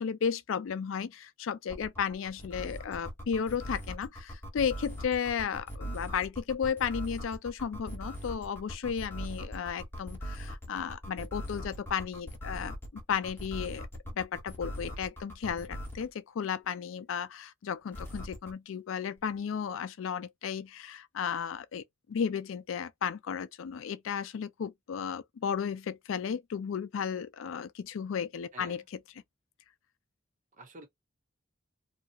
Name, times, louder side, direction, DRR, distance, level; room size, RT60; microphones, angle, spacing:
voice 1, 0.0-13.9 14.2-28.8, left 7 dB, 75° left, 0.4 m, -34 dB
sound 1, 1.7-16.1 17.9-18.5, equal, 10° left, 1.1 m, -40 dB
voice 2, 28.5-28.9 30.5-30.9, right 2 dB, 40° right, 1.0 m, -50 dB
2.7 x 2.3 x 2.7 m
head